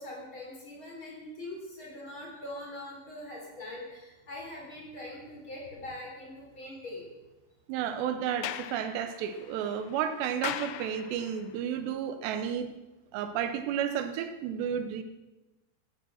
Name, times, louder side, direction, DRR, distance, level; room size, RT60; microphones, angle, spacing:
voice 1, 0.0-7.1, left 1 dB, 30° left, -2 dB, 3.9 m, -42 dB
voice 2, 7.7-12.7 13.1-15.0, right 9 dB, 80° right, 10 dB, 2.9 m, -32 dB
Sliding door, 8.2-11.5, left 13 dB, 90° left, 2.9 m, -40 dB
16.0 x 12.5 x 6.2 m, 1.1 s
omnidirectional pair, 5.1 m